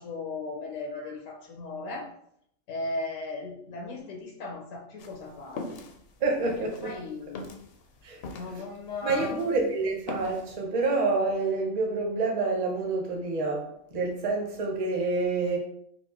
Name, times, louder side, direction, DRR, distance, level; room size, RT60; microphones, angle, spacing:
voice 1, 0.0-2.1 2.7-5.8 6.8-7.4 8.3-9.4, left 3 dB, 90° left, 0 dB, 1.1 m, -36 dB
sound 1, 5.0-9.6 9.9-10.5, left 3 dB, 65° left, 0.7 m, -40 dB
voice 2, 6.2-7.0 8.0-8.2 8.4-8.6 9.0-15.6, right 3 dB, 35° right, 0 dB, 0.7 m, -28 dB
4.5 x 2.5 x 2.9 m, 0.70 s
omnidirectional pair, 1.3 m